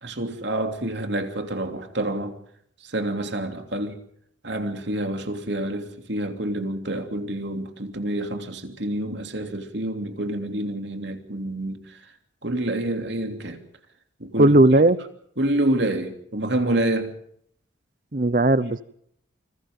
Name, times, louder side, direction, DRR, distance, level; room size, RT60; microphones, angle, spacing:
voice 1, 0.0-2.4 2.8-4.0 4.4-11.8 12.4-13.6 14.2-14.5 15.4-17.1, right 1 dB, 60° right, 3.1 m, -27 dB
voice 2, 14.4-15.0 18.1-18.8, right 1 dB, 40° right, 0.9 m, -16 dB
28.5 x 27.0 x 3.9 m
head